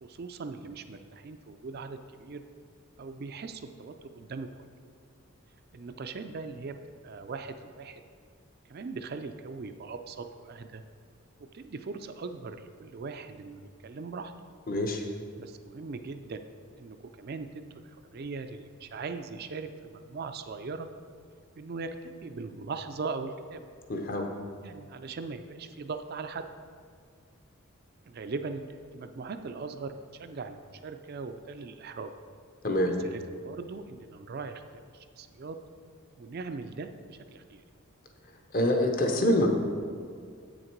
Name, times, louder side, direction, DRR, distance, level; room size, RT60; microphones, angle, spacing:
voice 1, 0.0-2.4 3.0-4.5 5.7-6.7 7.0-8.0 8.6-10.8 11.5-14.3 15.4-16.4 16.8-20.9 21.6-23.6 24.6-26.4 28.1-32.1 33.0-35.6 36.2-37.6, right 4 dB, 45° right, 8 dB, 0.4 m, -40 dB
voice 2, 14.7-15.0 23.9-24.3 32.6-32.9 38.5-39.5, left 1 dB, 40° left, 4 dB, 0.9 m, -25 dB
8.0 x 6.5 x 4.5 m, 2.1 s
head